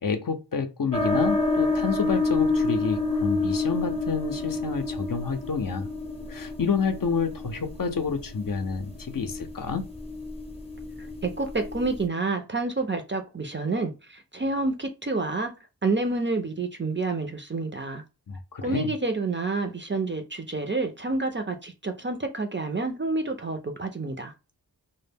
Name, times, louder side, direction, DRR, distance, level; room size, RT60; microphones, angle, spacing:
voice 1, 0.0-5.9 6.3-9.8 18.3-18.9, left 5 dB, 55° left, 0.5 m, -29 dB
sound 1, 0.9-12.0, left 3 dB, 15° left, 0.6 m, -29 dB
voice 2, 11.2-15.5 15.8-18.0 18.6-24.3, right 3 dB, 30° right, 0.4 m, -28 dB
2.1 x 2.0 x 3.3 m
wide cardioid pair, 45°, 42 cm